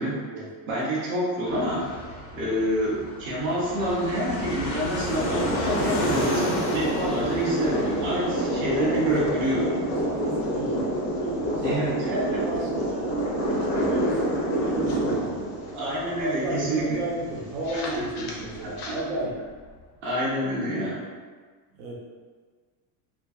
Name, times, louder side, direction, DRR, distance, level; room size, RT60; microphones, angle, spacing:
voice 1, 0.7-1.8 2.3-9.7 11.6-12.1 15.7-17.0 17.9-18.2 20.0-21.0, right 1 dB, 30° right, -7 dB, 0.5 m, -27 dB
Fixed-wing aircraft airplane, 1.4-19.8, left 1 dB, 85° left, 0.8 m, -36 dB
sound 1, 5.1-18.9, right 1 dB, 55° left, 0.6 m, -28 dB
voice 2, 8.7-10.9 11.2-13.2 13.5-15.5 16.0-19.4 21.7-21.9, right 1 dB, 80° right, -3 dB, 0.8 m, -34 dB
2.6 x 2.6 x 2.3 m, 1.5 s
cardioid pair, 180°, 44 cm